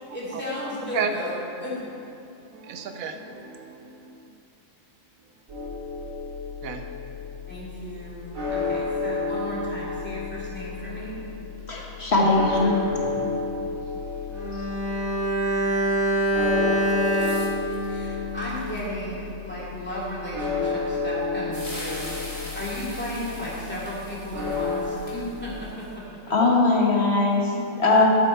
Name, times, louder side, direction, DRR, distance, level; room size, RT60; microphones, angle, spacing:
voice 1, 0.0-1.8 7.5-11.2 17.8-25.8, left 1 dB, 5° left, -8 dB, 2.8 m, -34 dB
voice 2, 2.5-4.2 6.6-6.9, right 6 dB, 85° right, 6 dB, 1.2 m, -32 dB
sound 1, 5.5-24.9, left 4 dB, 70° right, 3.6 m, -32 dB
sound 2, 11.6-11.8 12.1-12.2 12.6-13.1 16.8-18.0 18.4-18.9 19.3-19.4 21.2-21.3 21.5-25.9, left 1 dB, 25° left, 1.8 m, -42 dB
voice 3, 11.7-12.7 26.3-28.1, left 3 dB, 50° left, -2 dB, 1.5 m, -20 dB
Bowed string instrument, 14.3-18.8 19.0-19.2, right 1 dB, 40° right, 3.2 m, -25 dB
12.0 x 8.7 x 4.5 m, 2.8 s
omnidirectional pair, 1.4 m